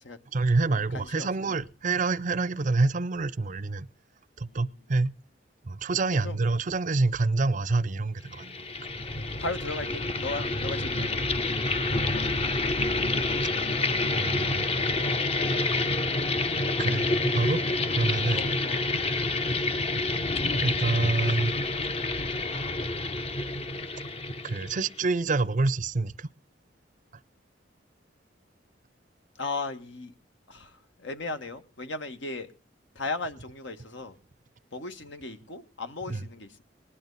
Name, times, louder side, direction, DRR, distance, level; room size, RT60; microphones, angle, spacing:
voice 1, 0.3-3.9 4.4-5.1 5.7-8.5 14.1-14.7 16.8-17.6 17.9-18.4 20.6-21.5 24.4-26.3 36.1-36.2, right 3 dB, 45° right, 0.6 m, -27 dB
voice 2, 0.9-1.3 4.5-4.7 6.2-6.4 9.4-11.1 18.3-19.2 29.4-30.1 30.5-30.7 31.0-32.5 32.9-34.1 34.7-36.6, left 3 dB, 75° left, 1.6 m, -36 dB
sound 1, 8.3-25.0, left 2 dB, 30° left, 0.8 m, -28 dB
20.0 x 10.5 x 4.0 m
head